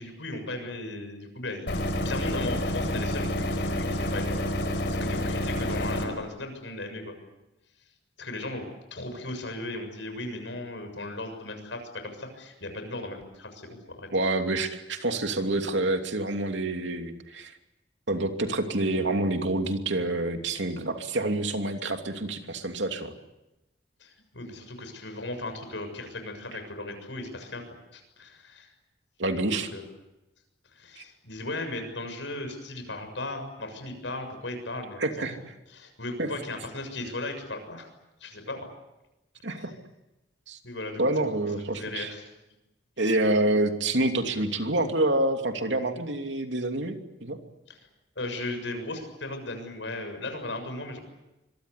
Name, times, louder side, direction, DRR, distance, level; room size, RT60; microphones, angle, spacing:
voice 1, 0.0-1.7 2.0-4.3 4.6-7.1 8.2-8.6 8.9-14.1 24.0-27.6 27.9-28.7 29.5-29.8 30.7-35.1 35.7-37.9 38.2-38.7 39.5-39.7 40.6-41.3 41.6-42.3 47.7-47.8 48.2-51.0, left 2 dB, 80° left, 7 dB, 7.0 m, -37 dB
sound 1, 1.7-6.1, left 1 dB, 65° left, 4.9 m, -28 dB
voice 2, 14.1-17.5 18.1-23.1 29.2-29.7 31.0-31.1 35.0-35.4 36.2-36.3 39.4-39.7 40.5-40.6 41.0-42.1 43.0-47.4, right 2 dB, 80° right, 5 dB, 2.9 m, -27 dB
25.5 x 23.5 x 8.4 m, 0.97 s
head